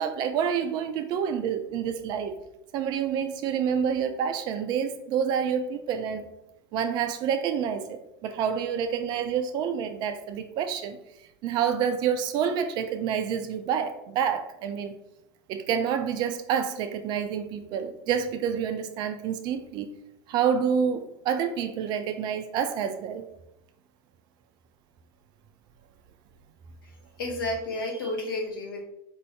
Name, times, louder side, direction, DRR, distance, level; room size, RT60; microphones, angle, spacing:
voice 1, 0.0-2.4 2.7-6.2 6.7-11.0 11.4-14.9 15.5-19.9 20.3-23.3, right 7 dB, 35° right, 8 dB, 0.4 m, -28 dB
voice 2, 27.2-28.9, left 2 dB, 65° left, 0 dB, 1.0 m, -31 dB
4.5 x 2.6 x 3.2 m, 0.85 s
figure-of-eight pair, 85°, 13 cm